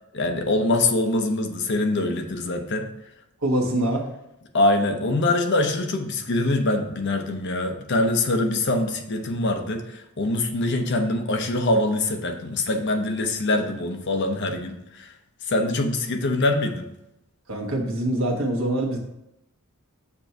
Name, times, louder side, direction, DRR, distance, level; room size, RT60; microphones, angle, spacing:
voice 1, 0.1-2.9 4.5-15.1 15.5-16.9, left 2 dB, 55° left, 5 dB, 0.7 m, -24 dB
voice 2, 3.4-4.0 17.5-19.0, right 1 dB, 75° right, 0 dB, 1.3 m, -24 dB
6.9 x 2.6 x 5.6 m, 0.86 s
head